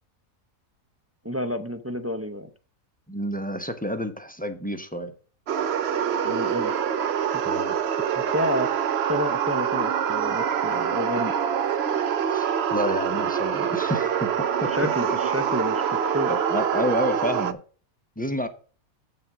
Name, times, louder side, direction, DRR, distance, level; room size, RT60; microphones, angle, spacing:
voice 1, 1.2-2.5 6.2-6.7 8.1-8.7 9.1-11.3 14.7-15.8 16.1-16.3, equal, 20° right, 7 dB, 0.3 m, -29 dB
voice 2, 3.1-5.1 7.4-7.8 12.3-15.2 16.3-17.6 18.2-18.5, equal, 10° left, 8 dB, 0.7 m, -29 dB
sound 1, 5.5-17.5, right 8 dB, 55° right, 0.8 m, -25 dB
7.8 x 7.0 x 4.9 m, 0.39 s
omnidirectional pair, 1.5 m